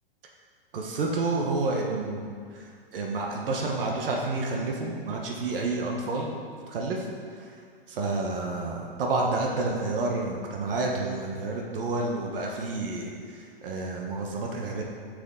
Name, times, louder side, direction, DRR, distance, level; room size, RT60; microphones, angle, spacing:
voice 1, 0.7-6.3 6.7-7.0 7.4-7.5 7.9-14.8, right 3 dB, 65° right, 0 dB, 1.2 m, -30 dB
7.6 x 6.4 x 3.8 m, 2.1 s
hypercardioid pair, 125°, 29 cm